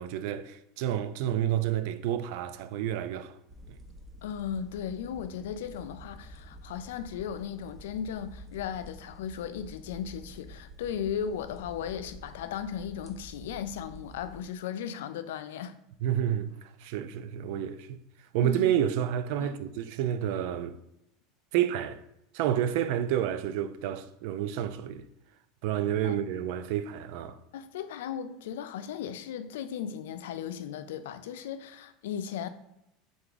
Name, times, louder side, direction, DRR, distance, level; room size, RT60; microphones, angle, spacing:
voice 1, 0.0-3.3 3.7-3.8 16.0-18.0 18.3-20.8 21.5-22.0 22.3-25.1 25.6-27.4, right 10 dB, 65° right, 0.3 m, -29 dB
sound 1, 3.5-14.4, equal, 15° right, 0.7 m, -49 dB
voice 2, 4.2-15.8 18.4-18.7 19.4-19.6 26.0-26.2 27.5-32.5, left 8 dB, 90° left, 0.3 m, -36 dB
3.6 x 3.5 x 3.9 m
supercardioid pair, 140°, 0 cm